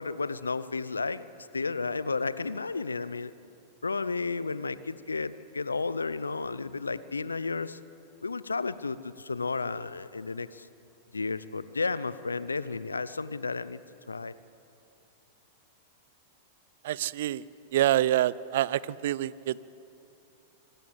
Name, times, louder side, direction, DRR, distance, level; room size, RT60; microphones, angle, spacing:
voice 1, 0.0-3.3 3.8-7.8 8.2-10.7 11.1-13.8 14.1-14.3, left 4 dB, 90° left, 16 dB, 0.6 m, -32 dB
voice 2, 16.8-17.4 17.7-19.6, right 13 dB, 60° right, 21 dB, 0.5 m, -26 dB
25.0 x 13.5 x 8.0 m, 2.8 s
figure-of-eight pair, 95°, 0 cm